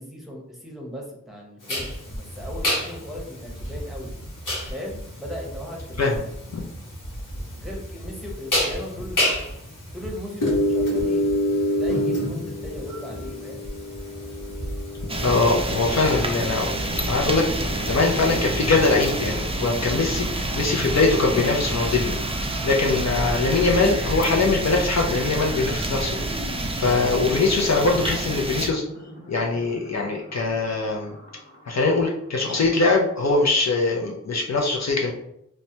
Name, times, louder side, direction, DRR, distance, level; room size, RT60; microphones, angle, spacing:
voice 1, 0.0-4.1 4.7-6.2 7.6-9.5 9.9-11.4 11.7-13.6, left 1 dB, ahead, -3 dB, 0.8 m, -37 dB
sound 1, 1.7-19.3, left 1 dB, 90° left, 0.9 m, -28 dB
sound 2, 15.1-28.7, right 2 dB, 20° right, 0.4 m, -28 dB
voice 2, 15.2-16.7 17.1-22.1 22.6-26.2 26.5-28.8 29.3-31.1 31.7-35.1, left 3 dB, 60° left, -1 dB, 0.5 m, -22 dB
sound 3, 16.3-32.6, equal, 25° left, 1.1 m, -43 dB
3.1 x 2.1 x 2.7 m, 0.75 s
wide cardioid pair, 45°, 31 cm